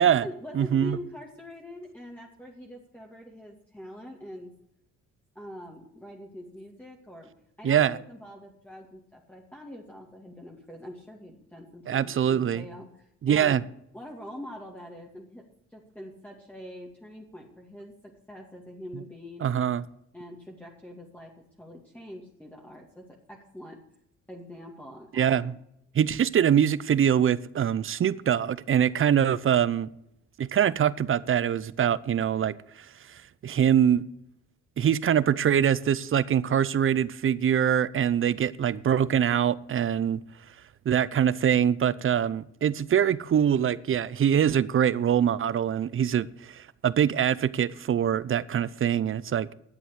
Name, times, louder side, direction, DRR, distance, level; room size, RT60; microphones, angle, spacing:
voice 1, 0.0-4.5 5.3-7.3 7.6-13.6 13.9-15.5 15.7-19.6 20.1-23.8 24.3-25.5, left 1 dB, 5° left, 2.3 m, -44 dB
voice 2, 0.5-1.0 7.6-8.0 11.9-12.6 13.2-13.6 19.4-19.8 25.1-25.5 25.9-29.9 30.4-32.6 33.1-34.0 34.8-40.2 40.9-49.5, right 9 dB, 45° right, 0.7 m, -24 dB
11.5 x 7.8 x 8.3 m
cardioid pair, 90°, 30 cm